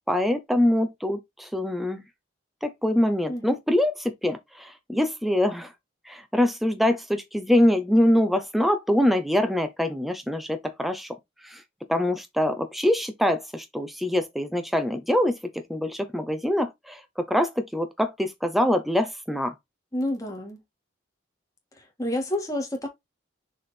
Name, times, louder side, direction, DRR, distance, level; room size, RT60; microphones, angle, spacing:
voice 1, 0.1-2.0 2.6-5.7 6.1-11.1 11.4-11.6 11.9-15.4 15.7-19.5, left 1 dB, ahead, 0.7 m, -24 dB
voice 2, 19.9-20.6 22.0-22.9, left 1 dB, 15° left, 1.8 m, -29 dB
6.5 x 3.6 x 4.3 m
head